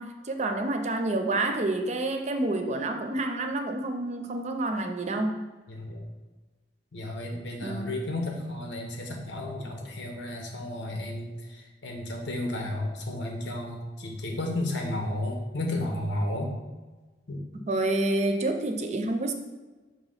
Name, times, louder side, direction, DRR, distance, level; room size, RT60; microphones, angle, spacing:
voice 1, 0.0-5.4 7.6-7.9 17.7-19.3, right 2 dB, 40° right, 5 dB, 0.6 m, -28 dB
voice 2, 5.7-6.0 6.9-16.5 17.3-17.4, left 1 dB, 90° left, 1 dB, 1.3 m, -33 dB
5.9 x 3.0 x 5.6 m, 1.3 s
head